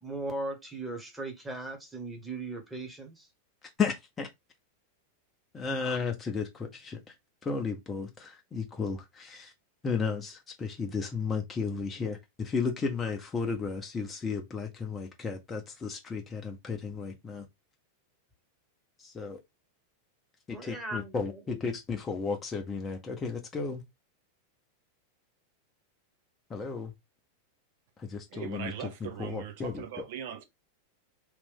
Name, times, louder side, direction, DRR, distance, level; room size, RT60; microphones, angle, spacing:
voice 1, 0.0-3.3 20.5-21.6, right 2 dB, 5° right, 1.2 m, -38 dB
voice 2, 3.6-4.3 5.5-7.1 7.4-9.5 9.8-17.5 19.0-19.4 20.5-23.8 26.5-26.9 28.0-30.1, left 5 dB, 20° left, 0.7 m, -34 dB
voice 3, 28.3-30.4, right 9 dB, 50° right, 0.6 m, -40 dB
3.1 x 2.5 x 3.5 m
figure-of-eight pair, 90°, 0 cm